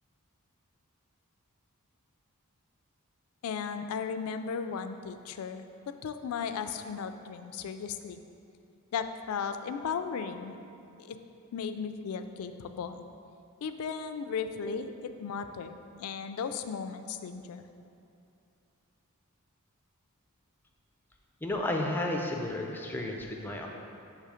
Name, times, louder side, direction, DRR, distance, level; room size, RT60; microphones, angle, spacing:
voice 1, 3.4-8.2 8.9-10.6 11.0-11.2 11.5-13.0 13.6-17.6, left 6 dB, 70° left, 9 dB, 0.3 m, -36 dB
voice 2, 21.4-23.7, left 1 dB, 10° left, 0 dB, 0.4 m, -32 dB
6.6 x 3.2 x 4.9 m, 2.6 s
head